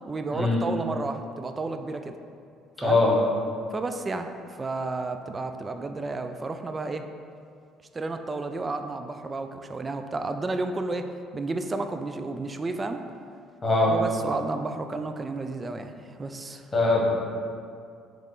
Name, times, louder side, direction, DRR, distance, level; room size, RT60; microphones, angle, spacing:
voice 1, 0.1-2.2 2.8-3.0 3.7-7.1 7.9-13.0 13.9-16.7, right 3 dB, 30° right, 7 dB, 0.3 m, -32 dB
voice 2, 2.8-3.1 13.6-13.9 16.7-17.1, left 2 dB, 25° left, -5 dB, 1.4 m, -21 dB
3.6 x 3.2 x 3.7 m, 2.4 s
hypercardioid pair, 65°, 0 cm